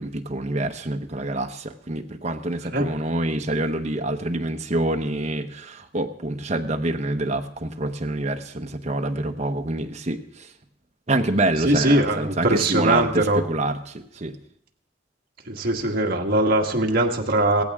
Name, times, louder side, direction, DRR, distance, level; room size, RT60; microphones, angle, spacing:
voice 1, 0.0-10.5 11.1-14.4, right 2 dB, 40° right, 5 dB, 1.0 m, -26 dB
voice 2, 11.6-13.4 15.5-17.6, right 1 dB, 55° right, 1 dB, 1.7 m, -21 dB
17.0 x 15.5 x 3.6 m, 0.67 s
head